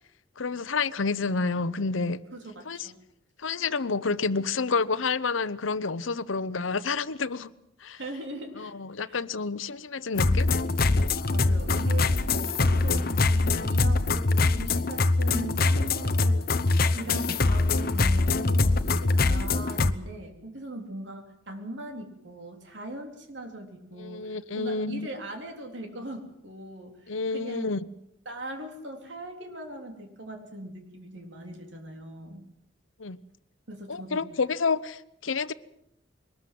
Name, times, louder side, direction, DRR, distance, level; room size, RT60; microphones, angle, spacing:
voice 1, 0.4-2.2 2.7-2.9 3.4-7.5 7.8-8.0 8.6-10.5 24.0-25.1 27.1-27.8 33.0-33.2 33.9-35.5, left 4 dB, 85° left, 0.9 m, -29 dB
voice 2, 2.3-3.0 7.9-8.7 9.1-9.2 11.3-16.6 17.0-27.0 27.3-27.7 28.3-32.5 33.7-34.3, right 1 dB, 65° right, 3.8 m, -40 dB
sound 1, 10.2-19.9, left 3 dB, 50° left, 0.9 m, -23 dB
22.5 x 20.0 x 7.7 m
head